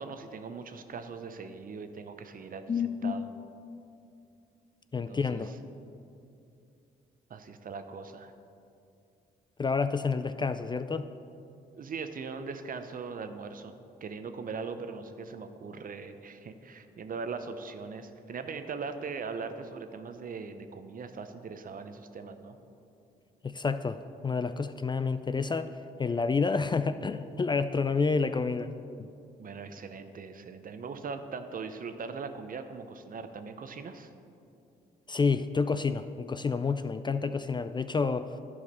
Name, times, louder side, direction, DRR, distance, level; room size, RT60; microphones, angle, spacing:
voice 1, 0.0-3.3 5.1-5.5 7.3-8.3 11.7-13.7 14.0-22.6 29.4-34.1, right 5 dB, 50° right, 8 dB, 0.7 m, -40 dB
voice 2, 2.7-3.2 4.9-5.5 9.6-11.1 23.4-25.7 26.0-28.7 29.0-29.1 35.1-38.3, left 4 dB, 25° left, 11 dB, 0.4 m, -29 dB
11.0 x 4.9 x 5.4 m, 2.6 s
supercardioid pair, 55°, 19 cm